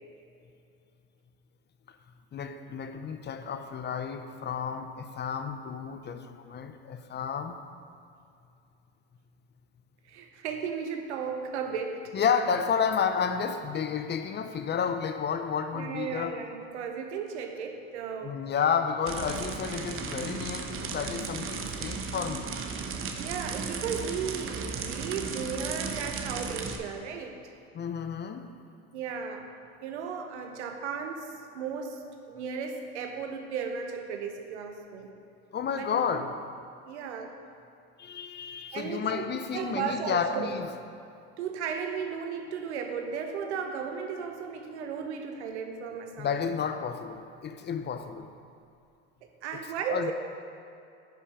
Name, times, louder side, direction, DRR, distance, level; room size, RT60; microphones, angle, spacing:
voice 1, 2.3-7.6 12.1-16.4 18.2-22.6 27.7-28.5 35.5-36.4 38.0-40.7 46.2-48.3 49.9-50.1, left 6 dB, 30° left, 0.6 m, -31 dB
voice 2, 10.1-12.2 15.7-18.4 23.1-27.4 28.9-29.5 29.8-35.1 35.7-35.9 36.9-37.4 38.7-39.2 39.5-40.5 41.4-46.5 49.4-50.1, right 6 dB, 85° right, 1.0 m, -35 dB
sound 1, 19.1-26.8, right 5 dB, 40° right, 1.0 m, -35 dB
10.5 x 5.4 x 5.0 m
hypercardioid pair, 85°, 34 cm